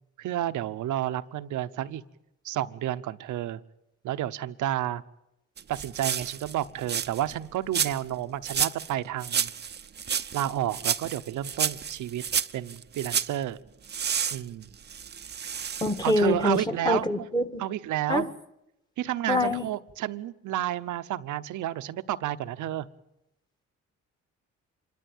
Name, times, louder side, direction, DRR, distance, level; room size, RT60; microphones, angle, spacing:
voice 1, 0.2-2.0 2.4-3.6 4.0-5.0 5.7-9.5 10.3-12.2 12.5-13.6 14.3-14.7 16.0-17.3 17.6-18.3 19.0-22.9, right 13 dB, 80° right, 13 dB, 0.9 m, -31 dB
sound 1, 5.6-7.4 7.7-8.1 8.4-8.9 9.2-13.4 13.9-16.3 16.5-16.6, right 7 dB, 35° right, 0.7 m, -30 dB
voice 2, 15.8-17.6 18.1-18.2 19.3-19.7, left 1 dB, 15° left, 6 dB, 1.6 m, -25 dB
26.5 x 13.0 x 9.0 m, 0.87 s
cardioid pair, 90°, 30 cm